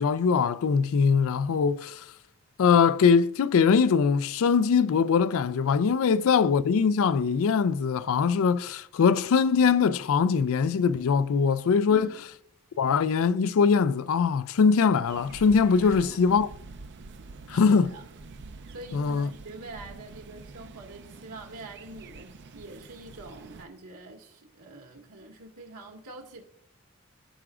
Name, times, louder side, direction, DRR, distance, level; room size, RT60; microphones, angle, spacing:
voice 1, 0.0-2.0 2.6-12.1 12.8-16.5 17.5-17.9 18.9-19.3, left 5 dB, 65° left, 0.4 m, -22 dB
voice 2, 6.1-6.4 11.9-12.3 15.8-16.2 17.5-18.0 18.7-26.4, right 3 dB, 80° right, 1.8 m, -45 dB
sound 1, 15.1-23.7, right 3 dB, 50° right, 0.5 m, -46 dB
14.0 x 5.9 x 2.4 m
head